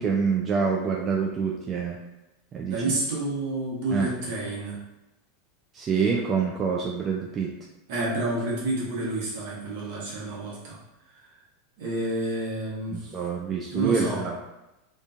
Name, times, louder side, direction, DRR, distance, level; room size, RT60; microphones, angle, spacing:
voice 1, 0.0-2.0 2.5-2.9 3.9-4.1 5.7-7.5 12.9-14.4, right 5 dB, 30° right, -1 dB, 0.3 m, -26 dB
voice 2, 2.7-4.8 7.9-10.8 11.8-13.1 13.7-14.2, right 2 dB, 65° right, -5 dB, 0.9 m, -29 dB
2.4 x 2.4 x 2.4 m, 0.96 s
hypercardioid pair, 90°, 0 cm